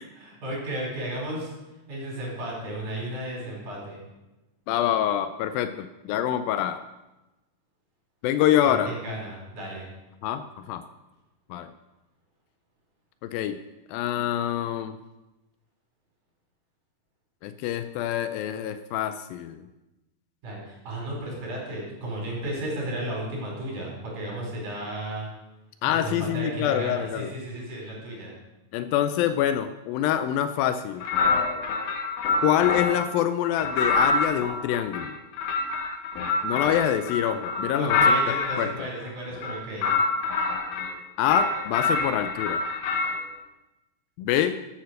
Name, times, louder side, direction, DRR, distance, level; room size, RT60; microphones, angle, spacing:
voice 1, 0.1-1.5 1.9-4.0 8.6-9.9 20.4-25.3 25.8-28.3 37.7-39.9, right 1 dB, 60° right, -3 dB, 6.3 m, -34 dB
voice 2, 4.7-6.8 8.2-8.9 10.2-10.8 11.5-11.7 13.2-13.6 13.9-15.0 17.4-19.6 25.8-27.3 28.7-31.0 32.4-35.2 36.4-38.2 38.6-38.7 41.2-42.6 44.2-44.6, left 11 dB, 85° left, 10 dB, 2.4 m, -26 dB
sound 1, 31.0-33.1 33.6-38.7 39.3-40.9 41.3-43.2, left 3 dB, 70° left, 2.5 m, -26 dB
13.5 x 8.8 x 6.5 m, 1.0 s
omnidirectional pair, 4.0 m